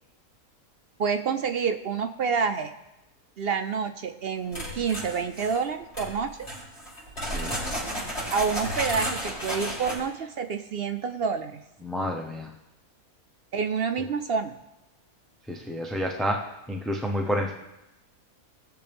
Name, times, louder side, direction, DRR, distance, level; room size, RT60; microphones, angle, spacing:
voice 1, 1.0-2.7 3.4-6.5 8.3-11.6 13.5-14.5, right 5 dB, 65° right, 8 dB, 0.6 m, -28 dB
sound 1, 4.5-5.6 5.9-6.1 6.4-10.0, equal, 45° left, 5.7 m, -32 dB
voice 2, 7.2-7.6 11.8-12.5 15.5-17.5, equal, ahead, 1 dB, 0.5 m, -30 dB
20.0 x 6.9 x 3.5 m, 0.95 s
omnidirectional pair, 1.5 m